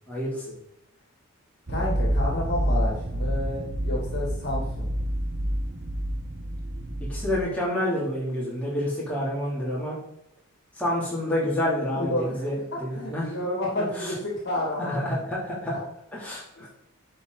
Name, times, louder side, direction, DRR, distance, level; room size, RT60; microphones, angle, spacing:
voice 1, 0.1-0.5 7.1-10.0 10.8-13.3 14.0-14.1 14.8-15.7 16.1-16.7, left 1 dB, 5° left, -7 dB, 3.1 m, -28 dB
voice 2, 1.7-4.9 11.9-15.2 16.6-16.7, left 1 dB, 50° left, -2 dB, 2.5 m, -30 dB
sound 1, 1.7-7.4, equal, 65° right, 1.2 m, -28 dB
11.0 x 5.2 x 4.0 m, 0.77 s
head